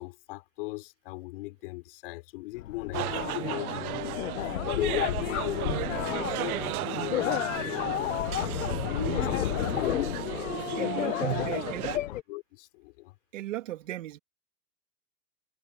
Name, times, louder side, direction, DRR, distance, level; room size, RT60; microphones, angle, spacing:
voice 1, 0.0-4.3 4.7-8.5 8.8-10.0 10.4-11.6 12.3-13.1, left 22 dB, 40° left, 4.0 m, -39 dB
sound 1, 2.5-12.2, left 13 dB, 60° left, 1.1 m, -32 dB
sound 2, 2.9-12.0, right 16 dB, 80° right, 0.6 m, -34 dB
voice 2, 10.8-11.8 13.3-14.2, right 14 dB, 60° right, 2.9 m, -37 dB
supercardioid pair, 175°, 43 cm